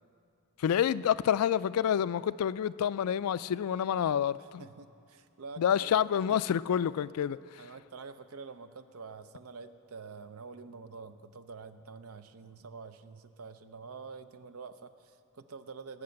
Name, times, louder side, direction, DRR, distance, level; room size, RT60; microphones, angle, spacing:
voice 1, 0.6-4.6 5.6-7.4, left 9 dB, 85° left, 18 dB, 0.3 m, -28 dB
voice 2, 4.6-5.9 6.3-6.4 7.6-16.0, right 4 dB, 75° right, 10 dB, 0.6 m, -47 dB
18.5 x 6.9 x 7.7 m, 2.5 s
head